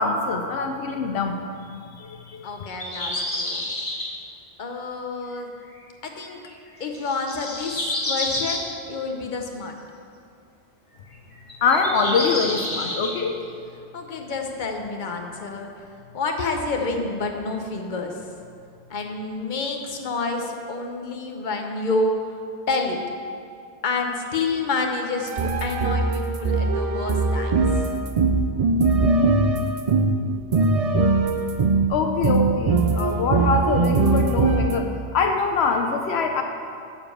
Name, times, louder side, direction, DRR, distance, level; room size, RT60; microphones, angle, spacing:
voice 1, 0.0-1.4 1.9-2.7 11.6-13.4 31.9-36.4, left 4 dB, 80° left, 4 dB, 0.9 m, -24 dB
voice 2, 2.4-3.7 4.6-5.5 6.0-6.4 6.8-9.8 13.9-15.7 16.1-18.2 18.9-22.3 22.7-23.0 23.8-27.5, left 3 dB, 50° left, 3 dB, 1.0 m, -28 dB
sound 1, 2.7-4.1 6.3-6.5 6.9-8.6 11.1-13.1, left 1 dB, 30° left, 1.3 m, -29 dB
sound 2, 25.2-30.2 30.5-31.9 32.2-34.8, right 3 dB, 45° right, 0.5 m, -21 dB
11.0 x 5.2 x 7.1 m, 2.4 s
omnidirectional pair, 1.1 m